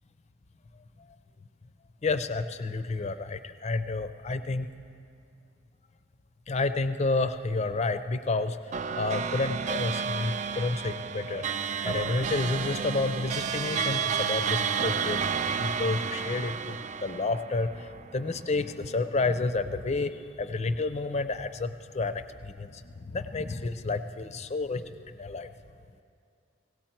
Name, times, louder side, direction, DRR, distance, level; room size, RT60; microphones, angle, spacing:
voice 1, 2.0-4.7 6.5-8.6 9.0-11.4 11.8-25.5, left 3 dB, 35° left, 11 dB, 0.5 m, -30 dB
sound 1, 8.7-18.4, right 6 dB, 40° right, 0.4 m, -31 dB
17.5 x 17.0 x 4.4 m, 2.5 s
head